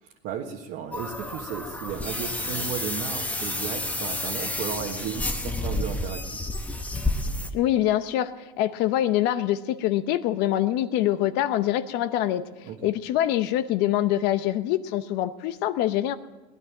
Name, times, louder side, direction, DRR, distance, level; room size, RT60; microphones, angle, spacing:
voice 1, 0.0-6.5 12.6-12.9, right 8 dB, 65° right, -1 dB, 1.5 m, -34 dB
sound 1, 0.9-7.5, left 2 dB, 10° left, 1.1 m, -30 dB
voice 2, 7.5-8.3 8.6-12.4 12.8-16.1, left 12 dB, 65° left, 11 dB, 0.8 m, -24 dB
18.0 x 10.5 x 7.3 m, 1.1 s
supercardioid pair, 125°, 19 cm